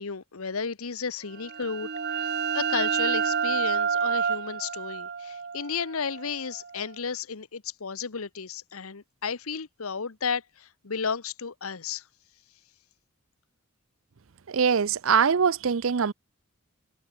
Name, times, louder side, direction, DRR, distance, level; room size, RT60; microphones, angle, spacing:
voice 1, 0.0-12.0, left 5 dB, 80° left, 1.0 m, -33 dB
sound 1, 1.4-6.9, right 6 dB, 50° right, 0.9 m, -29 dB
voice 2, 14.5-16.1, right 6 dB, 65° right, 0.5 m, -23 dB
head